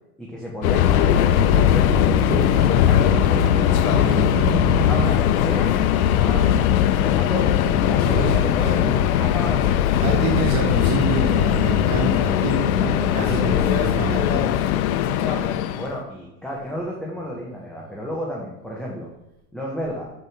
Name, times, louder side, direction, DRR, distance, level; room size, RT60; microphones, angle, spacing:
voice 1, 0.2-2.2 2.5-4.3 4.7-9.9 13.1-13.8 15.2-19.1 19.5-20.0, equal, ahead, -4 dB, 1.9 m, -32 dB
Subway metro underground, 0.6-16.0, left 11 dB, 75° left, 0.8 m, -19 dB
sound 1, 0.8-6.6, right 7 dB, 35° right, 0.5 m, -30 dB
voice 2, 7.4-8.9 10.0-14.7, right 2 dB, 60° right, -4 dB, 3.6 m, -27 dB
14.0 x 5.4 x 3.7 m, 0.93 s
supercardioid pair, 120°, 43 cm